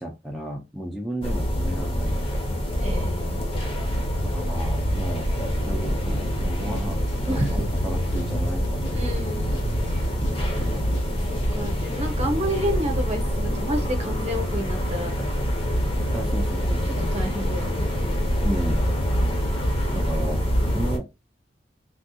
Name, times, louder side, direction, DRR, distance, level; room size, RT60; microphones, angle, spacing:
voice 1, 0.0-2.2 4.2-7.0 7.3-8.9 10.2-11.2 16.1-17.1 18.4-18.8 19.9-20.5 20.7-21.1, right 1 dB, ahead, 0.5 m, -34 dB
sound 1, 1.2-21.0, equal, 30° left, 0.7 m, -25 dB
voice 2, 2.8-3.4 7.3-7.7 8.9-9.5 11.5-15.1 17.1-17.9, equal, 35° right, 0.8 m, -29 dB
sound 2, 3.0-11.4, right 1 dB, 80° right, 0.6 m, -34 dB
sound 3, 6.7-11.8, equal, 85° left, 0.6 m, -43 dB
3.4 x 2.3 x 2.6 m
head